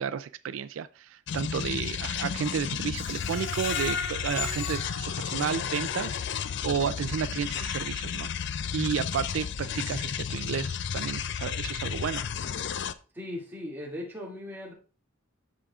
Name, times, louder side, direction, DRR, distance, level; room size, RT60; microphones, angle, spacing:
voice 1, 0.0-8.3 8.7-12.2, right 7 dB, 85° right, 14 dB, 0.4 m, -32 dB
sound 1, 1.3-12.9, left 7 dB, 60° left, 0.4 m, -33 dB
Screech, 2.9-5.9 6.4-6.5 6.9-7.0, left 6 dB, 80° left, 1.3 m, -36 dB
voice 2, 13.1-14.7, left 1 dB, 10° right, -4 dB, 2.3 m, -38 dB
13.0 x 5.0 x 2.4 m, 0.37 s
head